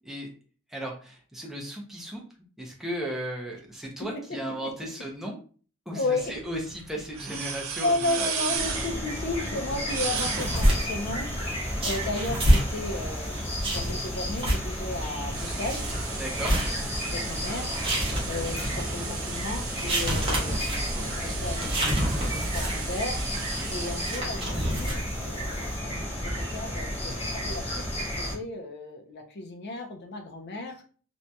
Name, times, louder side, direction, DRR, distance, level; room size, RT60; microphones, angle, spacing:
voice 1, 0.7-2.2 2.6-5.4 5.9-8.6 16.1-16.6 23.5-23.7, equal, ahead, -1 dB, 0.6 m, -36 dB
voice 2, 5.9-6.3 7.8-15.9 17.0-23.4 23.7-27.9 28.2-30.8, left 2 dB, 50° left, 4 dB, 0.6 m, -34 dB
sound 1, 6.2-24.2, right 6 dB, 70° right, 0.5 m, -38 dB
sound 2, 8.6-28.4, equal, 30° left, 0.9 m, -33 dB
sound 3, 10.1-25.8, equal, 25° right, 0.9 m, -30 dB
2.8 x 2.6 x 2.2 m, 0.41 s
head